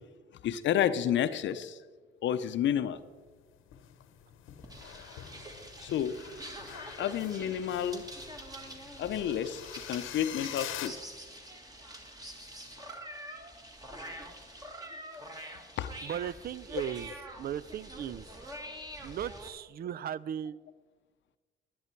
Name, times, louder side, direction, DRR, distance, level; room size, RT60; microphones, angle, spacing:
voice 1, 0.4-1.8 2.2-3.0 5.8-6.1 7.0-8.0 9.0-9.6 9.9-10.9 15.8-15.9, left 10 dB, 70° left, 12 dB, 0.6 m, -30 dB
sound 1, 3.2-10.9, left 11 dB, 90° left, 1.0 m, -46 dB
sound 2, 4.6-19.5, right 1 dB, 20° right, 1.9 m, -46 dB
voice 2, 16.0-18.3 19.0-20.6, right 10 dB, 50° right, 20 dB, 0.4 m, -37 dB
11.0 x 11.0 x 4.5 m, 1.4 s
cardioid pair, 90°, 20 cm